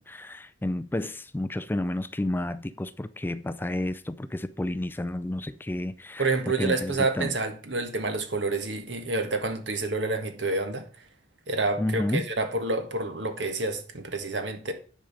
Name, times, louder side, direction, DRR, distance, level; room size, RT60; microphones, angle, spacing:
voice 1, 0.0-6.3 6.6-7.3 11.8-12.2, left 1 dB, 10° left, 0.4 m, -31 dB
voice 2, 6.2-10.9 11.5-14.7, right 3 dB, 80° right, 1.7 m, -28 dB
10.0 x 5.0 x 5.9 m
head